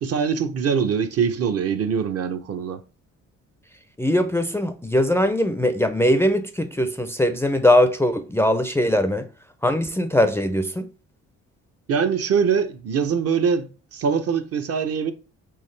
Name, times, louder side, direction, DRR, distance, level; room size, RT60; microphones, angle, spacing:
voice 1, 0.0-2.8 11.9-15.1, right 6 dB, 55° right, 0.6 m, -23 dB
voice 2, 4.0-9.3 9.6-10.9, left 1 dB, 10° left, 0.4 m, -21 dB
4.7 x 3.2 x 3.1 m
cardioid pair, 90°, 30 cm